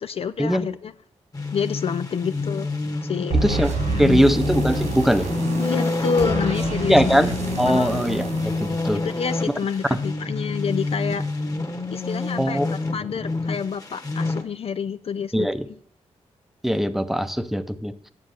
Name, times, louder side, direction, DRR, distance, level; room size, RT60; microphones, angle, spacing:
voice 1, 0.0-0.9 1.5-2.7 3.0-3.4 3.9-4.3 5.6-7.0 7.7-8.0 8.9-11.3 11.9-15.5, left 6 dB, 55° left, 0.4 m, -28 dB
sound 1, 1.3-14.4, left 3 dB, 30° left, 1.4 m, -28 dB
sound 2, 3.3-9.5, right 2 dB, 85° right, 2.8 m, -28 dB
voice 2, 3.4-3.7 4.0-5.3 6.9-9.0 9.9-10.0 12.4-12.7 15.3-15.7 16.6-17.9, equal, ahead, 0.7 m, -21 dB
7.5 x 7.0 x 6.6 m
cardioid pair, 55°, 12 cm